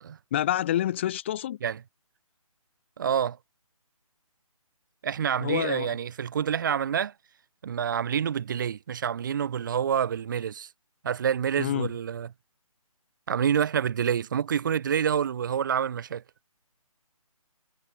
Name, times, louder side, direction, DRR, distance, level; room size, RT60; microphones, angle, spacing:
voice 1, 0.3-1.6 5.4-5.9 11.6-11.9, left 12 dB, 20° left, 0.8 m, -27 dB
voice 2, 3.0-3.4 5.0-7.1 7.6-10.7 11.0-12.3 13.3-16.2, right 8 dB, 35° right, 1.0 m, -27 dB
hypercardioid pair, 160°, 19 cm